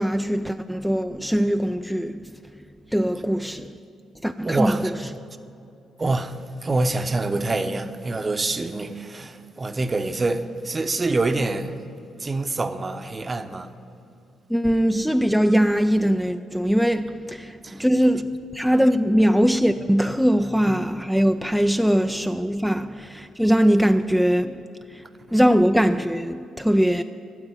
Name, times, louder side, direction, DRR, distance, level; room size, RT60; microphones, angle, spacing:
voice 1, 0.0-2.3 2.9-3.7 4.2-5.0 14.5-24.6 24.9-25.0 25.3-27.0, equal, ahead, 0.4 m, -21 dB
voice 2, 4.4-4.9 6.0-6.4 6.6-11.8 12.2-13.7 17.6-17.8, right 2 dB, 30° right, 0.8 m, -26 dB
9.6 x 7.7 x 9.2 m
supercardioid pair, 55°, 0 cm